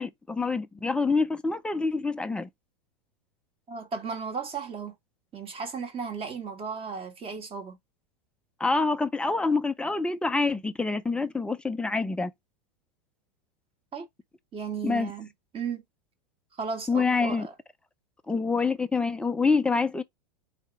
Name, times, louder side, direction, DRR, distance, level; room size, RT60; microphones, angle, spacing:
voice 1, 0.0-2.5 8.6-12.3 14.8-15.1 16.9-17.5 18.3-20.0, left 4 dB, 5° left, 0.4 m, -26 dB
voice 2, 3.7-4.9 5.3-7.8 13.9-14.1 14.5-15.3 15.5-15.8 16.6-17.5, right 5 dB, 25° right, 1.7 m, -35 dB
4.2 x 2.8 x 4.5 m
hypercardioid pair, 110°, 21 cm